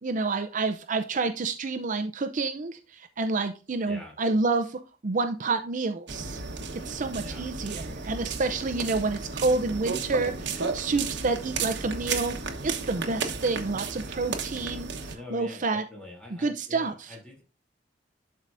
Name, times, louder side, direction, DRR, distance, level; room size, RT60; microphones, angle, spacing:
voice 1, 0.0-6.4 6.8-12.4 12.6-15.8 16.4-17.1, right 3 dB, 45° right, 8 dB, 0.6 m, -29 dB
voice 2, 3.8-4.1 7.2-7.4 15.1-17.4, left 2 dB, 5° left, -2 dB, 3.0 m, -44 dB
sound 1, 6.1-15.2, right 4 dB, 65° right, 1.2 m, -34 dB
11.5 x 4.7 x 2.6 m, 0.33 s
head